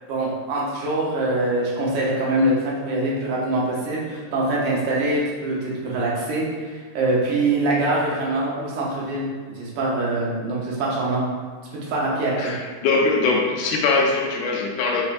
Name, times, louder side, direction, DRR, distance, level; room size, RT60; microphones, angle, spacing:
voice 1, 0.1-11.2 11.7-12.5, right 2 dB, 75° right, -4 dB, 2.3 m, -24 dB
voice 2, 12.3-15.0, left 3 dB, 80° left, -1 dB, 2.0 m, -22 dB
5.6 x 3.3 x 2.5 m, 1.5 s
omnidirectional pair, 3.7 m